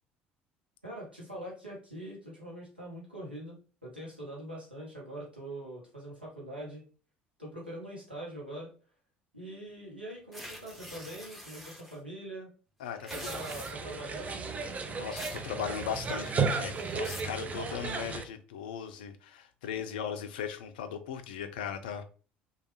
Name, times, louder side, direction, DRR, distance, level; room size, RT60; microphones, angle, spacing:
voice 1, 0.8-6.8 7.4-8.7 9.3-12.5 13.1-15.0, right 1 dB, 90° right, 0.8 m, -43 dB
sound 1, 10.3-12.0 12.9-14.0 15.2-15.5 15.8-16.3 16.7-17.4, equal, ahead, 0.7 m, -45 dB
voice 2, 12.8-13.4 15.0-22.0, left 8 dB, 70° left, 0.4 m, -38 dB
sound 2, 13.1-18.2, right 5 dB, 30° right, 0.4 m, -34 dB
3.1 x 2.2 x 3.0 m
figure-of-eight pair, 60°, 5 cm